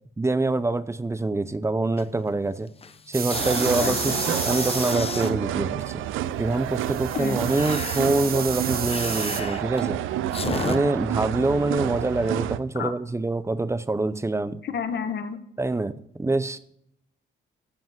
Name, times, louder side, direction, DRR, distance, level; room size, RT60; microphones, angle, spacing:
voice 1, 0.2-2.7 3.1-6.0 6.4-10.0 10.6-14.6 15.6-16.6, right 2 dB, 15° right, 15 dB, 0.7 m, -25 dB
sound 1, 2.0-2.3 2.7-5.3 7.0-10.8, left 5 dB, 30° left, 0.9 m, -33 dB
sound 2, 3.1-5.0 6.7-9.4, right 6 dB, 50° right, 1.5 m, -32 dB
sound 3, 3.3-12.6, right 12 dB, 85° right, 0.6 m, -29 dB
voice 2, 3.8-4.2 7.1-7.4 12.7-12.9 14.6-15.4, left 6 dB, 60° left, 9 dB, 1.4 m, -30 dB
13.5 x 5.2 x 7.4 m, 0.72 s
cardioid pair, 90°, 20 cm